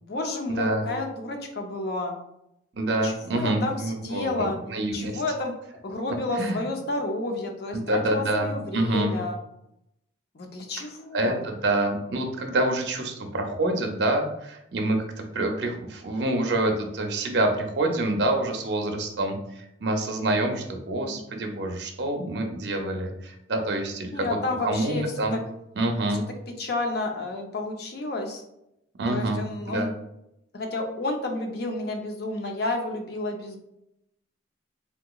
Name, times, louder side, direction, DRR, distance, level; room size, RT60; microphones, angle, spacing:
voice 1, 0.0-2.2 3.0-4.6 4.9-5.5 5.8-9.4 10.3-11.4 21.0-21.2 24.1-25.0 26.1-26.2 26.6-28.4 29.1-29.9 30.5-33.6, left 2 dB, 55° left, 3 dB, 0.5 m, -30 dB
voice 2, 2.7-5.1 6.4-6.6 7.7-9.2 11.1-24.4 24.6-25.4 25.8-26.2 29.0-29.9, right 1 dB, 60° right, 3 dB, 0.5 m, -27 dB
3.5 x 2.9 x 2.3 m, 0.82 s
head